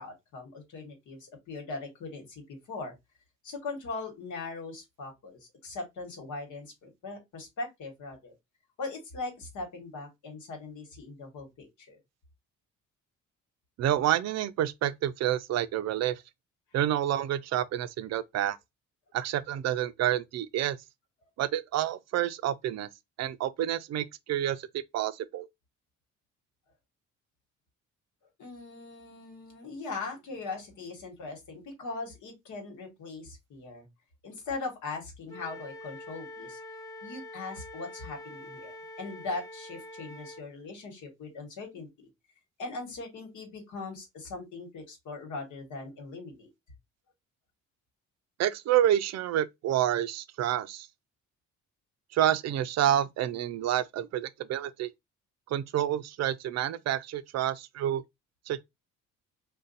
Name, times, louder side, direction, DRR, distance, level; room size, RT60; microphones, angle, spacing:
voice 1, 0.0-2.9 3.4-8.3 8.8-12.0 28.4-33.9 34.2-36.6 37.0-42.1 42.6-46.5, left 3 dB, 75° left, 1.4 m, -40 dB
voice 2, 13.8-16.2 16.7-18.6 19.1-20.8 21.4-22.9 23.2-25.5 48.4-50.9 52.1-54.9 55.5-58.0 58.5-58.6, right 11 dB, 60° right, 0.4 m, -28 dB
Wind instrument woodwind instrument, 35.3-40.4, left 1 dB, 10° left, 0.5 m, -45 dB
2.5 x 2.2 x 3.9 m
cardioid pair, 90°, 30 cm